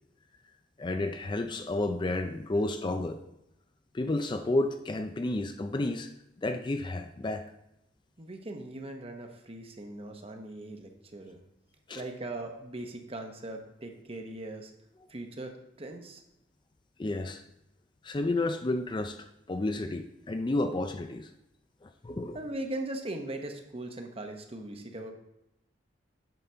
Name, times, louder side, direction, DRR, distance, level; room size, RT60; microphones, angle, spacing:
voice 1, 0.8-3.2 3.9-6.1 6.4-7.5 11.9-12.1 17.0-17.4 18.0-21.3 21.8-22.4, left 2 dB, 25° left, 8 dB, 0.4 m, -31 dB
voice 2, 8.2-11.4 11.9-14.7 15.1-16.2 22.3-25.1, right 1 dB, 30° right, 4 dB, 0.9 m, -39 dB
9.2 x 4.1 x 5.7 m, 0.86 s
head